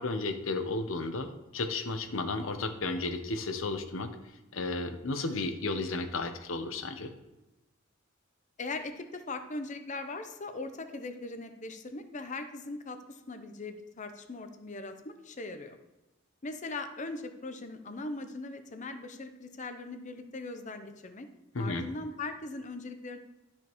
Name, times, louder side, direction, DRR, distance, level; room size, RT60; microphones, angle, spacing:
voice 1, 0.0-4.1 4.5-7.1 21.5-21.9, left 3 dB, 90° left, 8 dB, 0.8 m, -33 dB
voice 2, 8.6-15.8 16.4-21.3 21.6-23.2, left 3 dB, 40° left, 8 dB, 0.7 m, -40 dB
12.0 x 5.1 x 3.1 m, 1.0 s
head